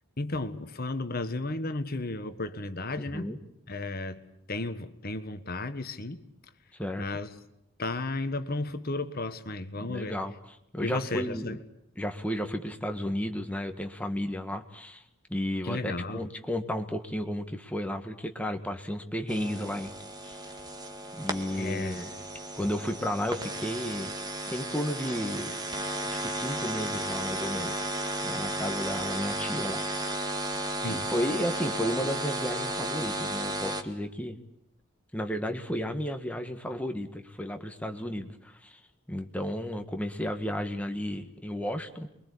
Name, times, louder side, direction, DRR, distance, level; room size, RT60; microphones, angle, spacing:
voice 1, 0.2-3.3 3.7-4.2 4.5-6.2 7.0-7.3 7.8-10.1 10.8-11.6 15.6-16.3 21.6-22.1 30.8-31.0, left 2 dB, 45° left, 1.5 m, -33 dB
voice 2, 3.0-3.4 6.8-7.1 9.8-10.3 10.7-11.6 12.0-15.0 15.3-19.9 20.2-20.4 21.2-22.1 22.6-24.1 24.5-25.5 26.1-27.9 28.2-30.4 30.9-34.4 35.1-38.8 39.1-42.1, equal, 5° left, 1.7 m, -33 dB
sound 1, 19.3-33.8, right 1 dB, 20° right, 1.8 m, -34 dB
28.5 x 23.0 x 8.5 m
head